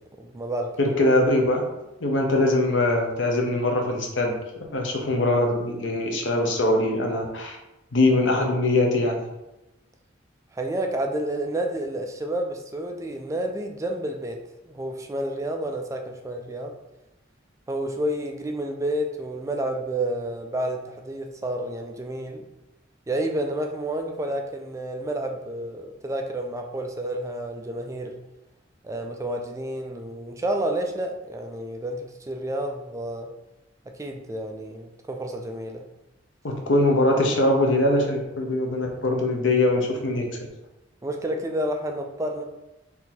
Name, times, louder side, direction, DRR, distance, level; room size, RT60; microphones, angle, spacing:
voice 1, 0.0-1.0 10.5-16.8 17.7-22.5 23.1-28.2 28.8-33.3 33.9-35.9 41.0-42.4, right 1 dB, 15° right, 3 dB, 0.4 m, -30 dB
voice 2, 0.8-1.7 2.0-4.3 4.7-7.6 7.9-9.2 36.4-40.3, left 2 dB, 75° left, 1 dB, 0.9 m, -22 dB
4.5 x 2.7 x 3.8 m, 0.98 s
head